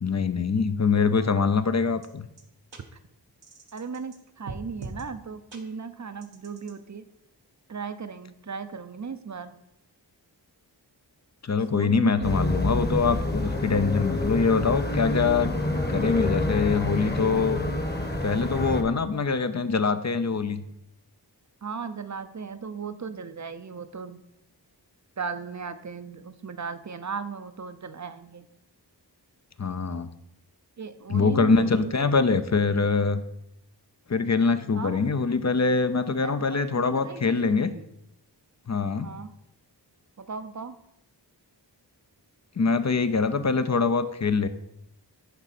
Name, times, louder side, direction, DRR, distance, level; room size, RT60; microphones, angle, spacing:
voice 1, 0.0-2.3 11.4-15.5 15.9-17.6 18.2-20.6 29.6-30.1 31.1-33.2 34.1-37.7 38.7-39.1 42.6-44.5, left 4 dB, 40° left, 11 dB, 0.5 m, -24 dB
sound 1, 2.0-2.1 2.4-2.5 2.7-2.8 3.4-4.2 4.5-5.0 5.5-5.6 6.2-6.7, right 3 dB, 75° right, 1.0 m, -41 dB
voice 2, 3.7-7.1 7.7-9.6 11.7-12.3 21.6-24.2 25.2-28.5 30.8-32.1 34.7-35.1 36.1-37.9 39.0-39.3 40.2-40.8, right 5 dB, 40° right, 11 dB, 0.6 m, -37 dB
sound 2, 12.2-18.8, left 1 dB, 25° left, 1.1 m, -28 dB
11.0 x 3.9 x 4.2 m, 0.81 s
wide cardioid pair, 40°, 43 cm